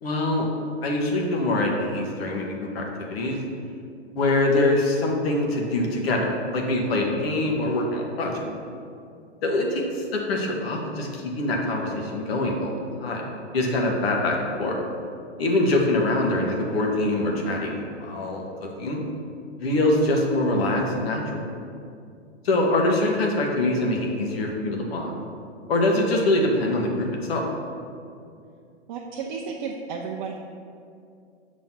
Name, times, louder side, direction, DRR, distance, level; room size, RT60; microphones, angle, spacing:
voice 1, 0.0-0.5 0.8-3.4 4.1-6.3 6.5-8.4 9.4-13.3 13.5-14.8 15.4-19.0 19.6-21.4 22.4-25.1 25.7-27.4, left 2 dB, 60° left, 0 dB, 1.3 m, -24 dB
voice 2, 28.9-30.4, right 5 dB, 45° right, -1 dB, 0.6 m, -33 dB
6.3 x 3.1 x 5.8 m, 2.4 s
hypercardioid pair, 115°, 34 cm